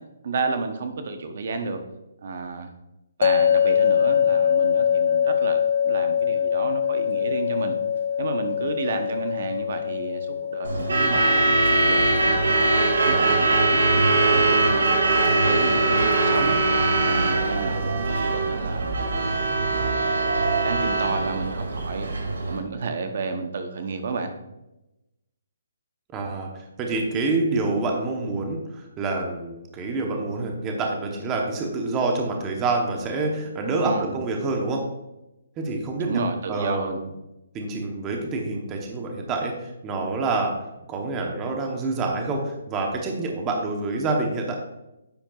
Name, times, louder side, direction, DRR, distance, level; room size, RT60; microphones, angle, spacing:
voice 1, 0.2-1.8 2.2-2.7 3.2-5.6 5.8-7.7 8.2-12.7 13.0-14.9 15.2-16.6 17.0-19.3 19.7-20.1 20.6-24.3 33.8-34.1 36.0-37.0, right 4 dB, 45° right, 7 dB, 0.8 m, -31 dB
sound 1, 3.2-16.3, left 8 dB, 45° left, 0.4 m, -25 dB
Truck / Alarm, 10.6-22.6, right 2 dB, 85° right, 2.2 m, -21 dB
voice 2, 26.1-34.8 35.6-36.2 36.5-37.0 37.5-39.5 39.8-40.5 40.9-44.5, right 3 dB, 15° right, 1 dB, 0.9 m, -27 dB
10.0 x 7.5 x 2.3 m, 0.93 s
hypercardioid pair, 175°, 0 cm